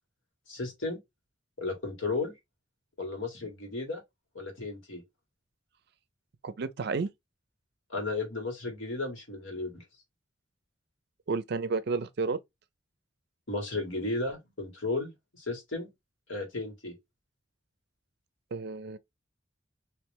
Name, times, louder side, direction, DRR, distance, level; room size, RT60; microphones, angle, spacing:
voice 1, 0.5-1.0 1.6-2.3 3.0-4.0 4.3-5.0 7.9-9.8 13.5-15.9 16.3-16.9, left 3 dB, 80° left, 1.8 m, -34 dB
voice 2, 6.4-7.1 11.3-12.4 18.5-19.0, right 4 dB, 55° right, 0.4 m, -31 dB
3.2 x 2.8 x 3.4 m
head